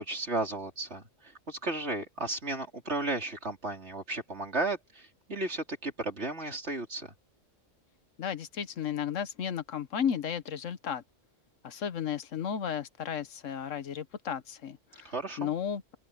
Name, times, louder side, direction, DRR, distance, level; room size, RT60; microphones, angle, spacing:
voice 1, 0.0-7.1 15.0-15.5, right 2 dB, 60° right, 4.1 m, -34 dB
voice 2, 8.2-11.0 11.6-16.0, left 8 dB, 80° left, 1.4 m, -34 dB
open air
omnidirectional pair, 1.3 m